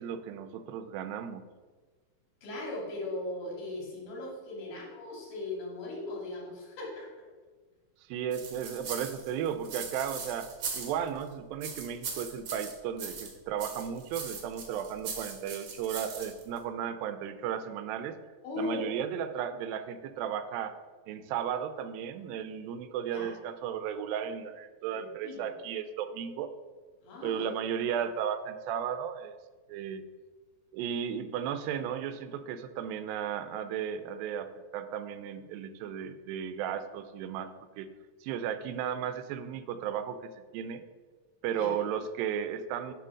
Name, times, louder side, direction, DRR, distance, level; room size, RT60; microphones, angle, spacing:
voice 1, 0.0-1.5 8.1-18.2 18.6-20.7 21.1-26.5 27.2-29.4 29.7-30.0 30.7-37.9 38.2-40.8 41.4-42.9, right 8 dB, 90° right, 10 dB, 2.4 m, -35 dB
voice 2, 2.4-7.1 18.4-18.8 23.1-23.3 24.9-25.4 27.0-27.5 41.5-41.7, left 2 dB, 70° left, -3 dB, 3.6 m, -38 dB
sound 1, 8.3-11.2 11.6-13.3 13.6-16.6, right 5 dB, 65° right, 1.2 m, -40 dB
9.2 x 3.4 x 6.2 m, 1.4 s
omnidirectional pair, 4.0 m